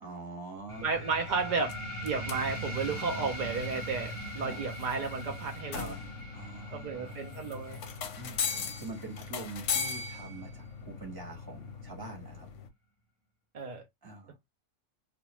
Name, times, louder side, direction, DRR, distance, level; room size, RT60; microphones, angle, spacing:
voice 1, 0.0-1.1 4.4-4.6 6.3-7.2 8.1-12.5 14.0-14.4, right 3 dB, 20° right, 0.9 m, -45 dB
sound 1, 0.7-12.7, left 6 dB, 65° left, 0.9 m, -40 dB
sound 2, 0.7-11.7, right 1 dB, 35° left, 0.5 m, -42 dB
voice 2, 0.8-6.0 6.7-7.8 13.5-13.8, right 4 dB, 80° right, 0.4 m, -33 dB
2.5 x 2.3 x 2.9 m
omnidirectional pair, 1.5 m